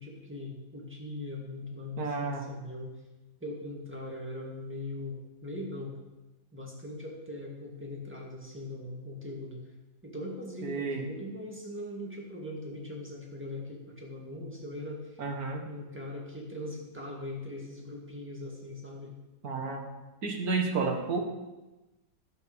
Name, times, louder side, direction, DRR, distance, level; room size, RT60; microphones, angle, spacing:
voice 1, 0.0-2.9 3.4-6.0 6.5-9.7 10.0-15.2 15.6-19.1, left 1 dB, 5° right, -1 dB, 2.0 m, -40 dB
voice 2, 2.0-2.4 10.6-11.0 15.2-15.6 19.4-19.8 20.2-21.2, right 4 dB, 60° right, 3 dB, 2.0 m, -31 dB
12.0 x 6.1 x 6.8 m, 1.1 s
omnidirectional pair, 1.8 m